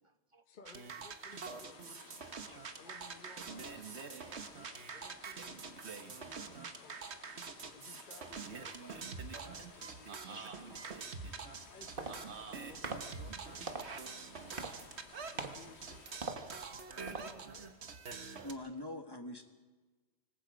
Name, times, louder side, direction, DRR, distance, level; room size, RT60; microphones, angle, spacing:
voice 1, 0.5-4.4 4.9-7.3 7.7-9.0 9.4-10.4 10.8-11.0 11.6-13.9 14.4-14.7 15.3-16.1 16.7-17.8, left 3 dB, 50° left, 6 dB, 1.2 m, -59 dB
sound 1, 0.7-18.5, right 5 dB, 80° right, 1.6 m, -46 dB
sound 2, 1.3-16.2, left 6 dB, 80° left, 1.4 m, -58 dB
voice 2, 1.3-1.7 2.0-3.0 3.7-4.9 6.3-6.7 8.3-8.8 10.1-10.8 11.2-11.3 16.0-16.9, right 2 dB, 30° right, 8 dB, 1.1 m, -61 dB
sound 3, 11.6-17.7, right 3 dB, 55° right, 1.5 m, -46 dB
voice 3, 18.1-19.4, left 1 dB, 20° left, 6 dB, 1.6 m, -44 dB
25.5 x 20.0 x 5.2 m, 1.3 s
omnidirectional pair, 1.1 m